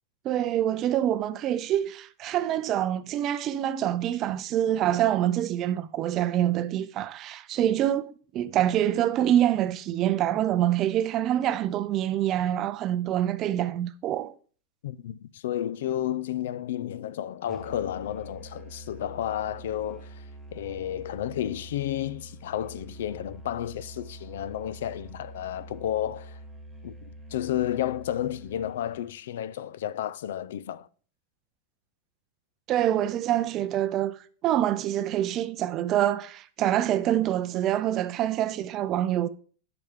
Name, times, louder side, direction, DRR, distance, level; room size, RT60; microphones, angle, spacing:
voice 1, 0.2-14.3 32.7-34.1 34.4-39.3, right 11 dB, 25° right, 0.4 m, -26 dB
voice 2, 14.8-20.2 20.5-26.4 26.8-30.9, left 11 dB, 75° left, 0.4 m, -32 dB
Musical instrument, 17.5-29.2, right 1 dB, ahead, 0.9 m, -46 dB
11.0 x 5.9 x 3.6 m
supercardioid pair, 165°, 0 cm